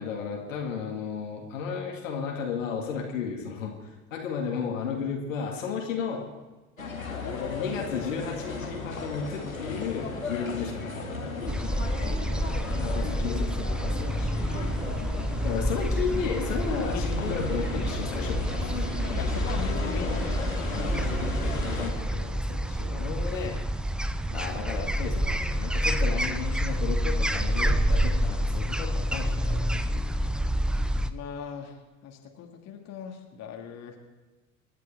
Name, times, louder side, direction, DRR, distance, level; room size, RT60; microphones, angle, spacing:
voice 1, 0.0-6.3 7.5-12.2 12.8-14.5 15.4-18.7 20.7-23.6 24.3-30.4, left 6 dB, 70° left, 0 dB, 2.4 m, -34 dB
sound 1, 6.8-21.9, left 3 dB, 85° left, 1.9 m, -35 dB
voice 2, 7.2-8.0 12.0-12.4 15.0-15.3 15.7-15.9 16.9-17.0 19.2-21.2 31.1-31.8 32.0-34.0, left 7 dB, 40° left, 1 dB, 2.2 m, -39 dB
sound 2, 11.5-31.1, equal, ahead, 0.4 m, -28 dB
26.5 x 11.0 x 3.5 m, 1.2 s
figure-of-eight pair, 70°, 40 cm